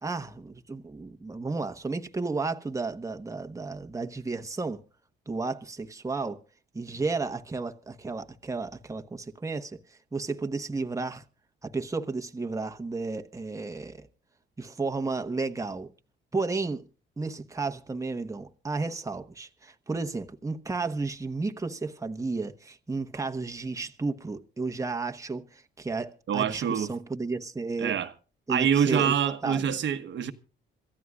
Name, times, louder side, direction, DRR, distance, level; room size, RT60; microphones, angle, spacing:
voice 1, 0.0-4.8 5.3-6.4 6.7-11.2 11.6-14.1 14.6-15.9 16.3-16.8 17.2-28.0 28.5-29.1 29.4-29.8, right 3 dB, 15° right, 1.2 m, -33 dB
voice 2, 26.3-26.9 27.8-28.1 28.5-30.3, right 8 dB, 65° right, 1.2 m, -26 dB
26.5 x 14.5 x 2.4 m
cardioid pair, 90°, 21 cm